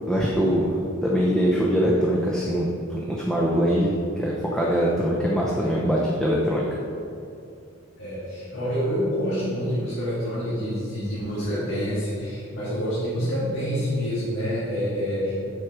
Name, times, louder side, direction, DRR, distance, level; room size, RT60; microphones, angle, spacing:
voice 1, 0.1-0.7 1.0-6.7, equal, 5° left, -5 dB, 0.7 m, -23 dB
voice 2, 8.0-15.5, equal, 70° left, -9 dB, 2.1 m, -27 dB
7.6 x 6.5 x 4.8 m, 2.5 s
head